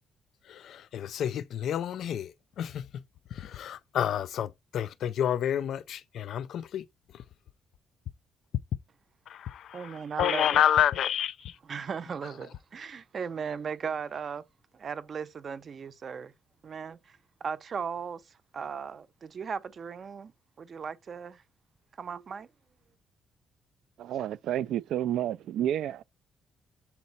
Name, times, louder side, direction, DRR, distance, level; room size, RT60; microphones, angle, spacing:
voice 1, 0.5-3.0 3.3-6.8 9.3-11.6, left 10 dB, 60° left, 0.4 m, -29 dB
voice 2, 9.7-10.6 11.7-14.4 14.7-16.3 16.6-18.2 18.5-20.3 20.6-21.4 22.0-22.5, right 6 dB, 35° right, 0.6 m, -37 dB
voice 3, 24.0-26.0, right 11 dB, 70° right, 0.3 m, -30 dB
7.2 x 4.2 x 4.0 m
cardioid pair, 165°, 0 cm